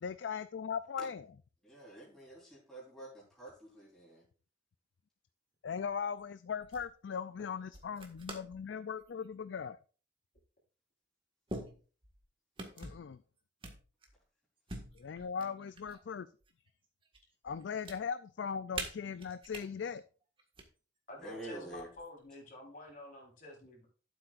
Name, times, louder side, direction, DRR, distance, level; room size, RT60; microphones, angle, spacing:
voice 1, 0.0-1.3 5.6-9.8 12.8-13.2 15.0-16.3 17.4-20.0, left 6 dB, 90° left, 13 dB, 0.4 m, -39 dB
voice 2, 1.6-4.2 8.5-8.6 21.2-21.9, right 1 dB, 5° left, -7 dB, 3.8 m, -48 dB
sound 1, 5.9-6.2 6.6-6.9 7.7-8.6 9.0-9.3 10.4-10.5 11.5-12.2 12.6-13.1 13.6-14.2 14.7-16.0 16.4-17.2 17.5-18.0 18.7-19.6 20.4-20.6 21.7-22.2, right 2 dB, 30° right, 1.7 m, -45 dB
voice 3, 21.1-23.9, left 1 dB, 50° left, 0 dB, 4.2 m, -49 dB
13.0 x 7.9 x 2.5 m, 0.37 s
head